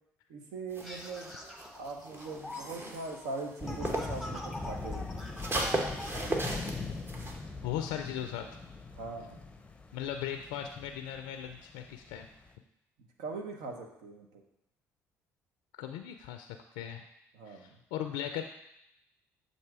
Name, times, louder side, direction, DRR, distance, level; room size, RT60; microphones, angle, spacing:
voice 1, 0.3-1.5 1.7-5.1 8.9-9.4 13.2-14.4 17.3-17.8, right 3 dB, 75° right, 3 dB, 0.8 m, -41 dB
sound 1, 0.7-4.3 4.6-7.3, right 1 dB, 35° right, 1.1 m, -36 dB
sound 2, 0.8-6.2, left 1 dB, 5° right, 1.0 m, -45 dB
sound 3, 3.6-12.5, left 3 dB, 15° left, 0.6 m, -42 dB
voice 2, 7.6-8.5 9.9-12.3 15.8-17.1 17.5-18.4, left 10 dB, 80° left, 6 dB, 0.3 m, -38 dB
7.5 x 2.7 x 4.7 m, 0.81 s
hypercardioid pair, 60°, 7 cm